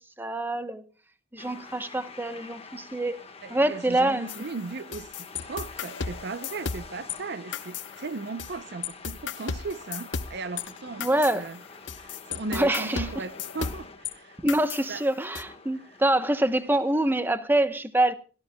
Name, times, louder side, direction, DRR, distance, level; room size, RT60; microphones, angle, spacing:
voice 1, 0.2-0.8 1.3-3.2 3.5-4.3 11.0-11.5 12.5-13.1 14.4-18.1, right 1 dB, 10° right, 0.9 m, -25 dB
sound 1, 1.4-17.1, left 4 dB, 30° left, 1.3 m, -47 dB
voice 2, 3.4-11.6 11.9-14.4 14.9-15.0 15.9-16.0, right 4 dB, 60° right, 0.6 m, -37 dB
sound 2, 4.3-7.2 7.5-8.5 8.8-14.1 14.5-15.4, left 6 dB, 70° left, 0.8 m, -35 dB
25.5 x 13.5 x 2.2 m
head